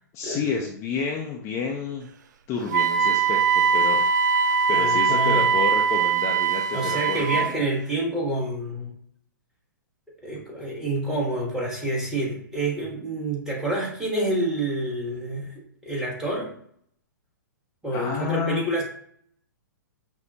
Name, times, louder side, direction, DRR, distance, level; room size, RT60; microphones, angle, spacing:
voice 1, 0.1-2.1 2.5-4.0 4.7-7.6 17.9-18.8, left 6 dB, 30° left, 0 dB, 0.5 m, -30 dB
Wind instrument woodwind instrument, 2.7-7.5, right 6 dB, 60° right, 0.4 m, -21 dB
voice 2, 4.7-5.5 6.7-8.9 10.2-15.5 15.8-16.5 17.8-18.8, right 1 dB, 5° right, -4 dB, 1.2 m, -28 dB
5.9 x 2.1 x 2.7 m, 0.64 s
figure-of-eight pair, 115°, 11 cm